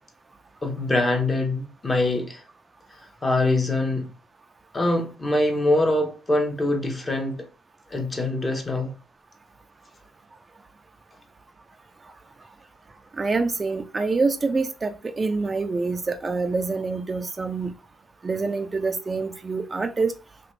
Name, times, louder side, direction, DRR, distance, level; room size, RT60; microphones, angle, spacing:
voice 1, 0.6-2.4 3.2-4.1 4.7-7.5 7.9-8.9, left 2 dB, 25° left, 0.8 m, -24 dB
voice 2, 13.2-17.7 18.2-20.1, right 3 dB, 30° right, 0.3 m, -26 dB
2.9 x 2.5 x 3.1 m
cardioid pair, 90°, 0 cm